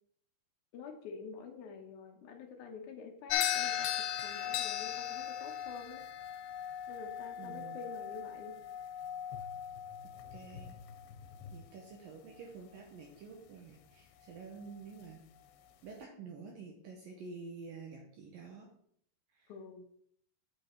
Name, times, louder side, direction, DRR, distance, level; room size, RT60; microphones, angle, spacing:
voice 1, 0.7-6.0 6.9-8.6 19.5-19.8, left 5 dB, 75° left, 2 dB, 1.8 m, -48 dB
sound 1, 3.3-11.7, left 10 dB, 90° left, 2.8 m, -38 dB
voice 2, 7.4-7.8 10.3-10.8 11.5-15.2 15.8-18.7 19.3-19.5, right 4 dB, 70° right, 0 dB, 2.3 m, -49 dB
8.5 x 5.3 x 4.4 m, 0.67 s
omnidirectional pair, 4.8 m